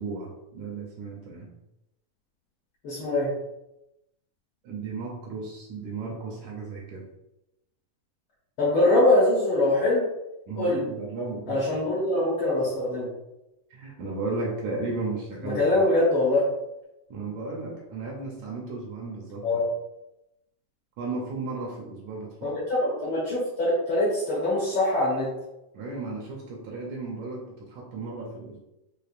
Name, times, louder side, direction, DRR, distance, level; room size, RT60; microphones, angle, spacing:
voice 1, 0.0-1.5 4.6-7.0 10.5-11.8 13.7-15.9 17.1-19.6 21.0-22.6 25.7-28.6, right 3 dB, 75° right, -1 dB, 1.9 m, -35 dB
voice 2, 2.8-3.3 8.6-10.1 10.6-10.8 11.5-13.1 15.4-16.5 19.4-19.6 22.4-22.5 22.8-25.3, left 1 dB, 70° left, -6 dB, 1.2 m, -23 dB
6.5 x 2.5 x 2.5 m, 0.90 s
omnidirectional pair, 3.7 m